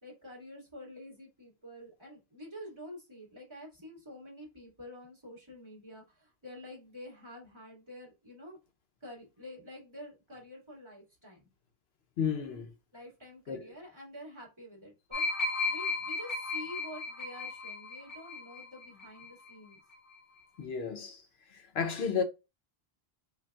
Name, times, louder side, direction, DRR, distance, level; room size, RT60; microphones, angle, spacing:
voice 1, 0.0-8.6 9.0-11.5 12.9-15.3 15.6-19.8, left 1 dB, 25° right, 1.9 m, -48 dB
voice 2, 12.2-12.7 13.5-13.6 20.6-21.2 21.5-22.2, left 6 dB, 75° left, 0.9 m, -32 dB
sound 1, 15.1-19.7 20.0-20.2, left 3 dB, 40° left, 0.9 m, -35 dB
5.2 x 2.4 x 2.3 m
omnidirectional pair, 1.1 m